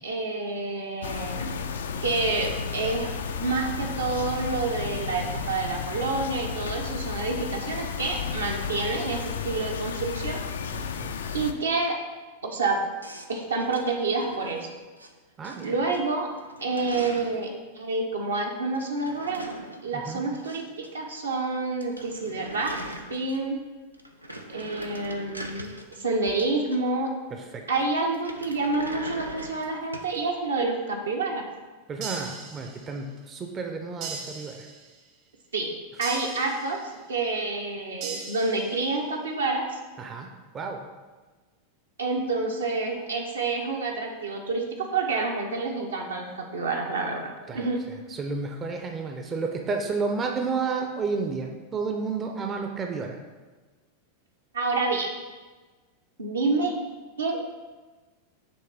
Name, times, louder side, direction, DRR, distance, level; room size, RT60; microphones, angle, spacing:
voice 1, 0.0-1.7 2.0-10.4 11.3-12.0 12.4-12.8 13.3-14.7 15.6-16.3 16.6-19.5 19.8-20.6 20.9-22.8 23.1-23.6 24.5-25.7 26.0-27.1 27.7-31.5 35.5-35.7 36.0-39.8 42.0-47.8 54.5-55.1 56.2-56.8 57.2-57.5, right 3 dB, 70° right, 1 dB, 0.9 m, -28 dB
sound 1, 1.0-11.5, left 6 dB, 65° left, 0.4 m, -33 dB
voice 2, 10.7-11.1 15.4-15.7 19.9-20.2 27.3-27.6 31.9-34.6 40.0-40.8 47.5-47.7 48.1-53.2, right 4 dB, 25° right, 3 dB, 0.6 m, -31 dB
sound 2, 13.0-15.1 15.4-16.0 16.3-17.5 18.7-20.9 21.1-21.2 21.5-21.6 21.8-23.6 23.9-27.0 28.1-30.2, right 1 dB, 85° right, 0.5 m, -41 dB
sound 3, 32.0-33.1 34.0-35.1 36.0-37.1 38.0-39.0, right 5 dB, 45° right, 0.9 m, -39 dB
7.2 x 3.2 x 4.8 m, 1.3 s
figure-of-eight pair, 90°, 0 cm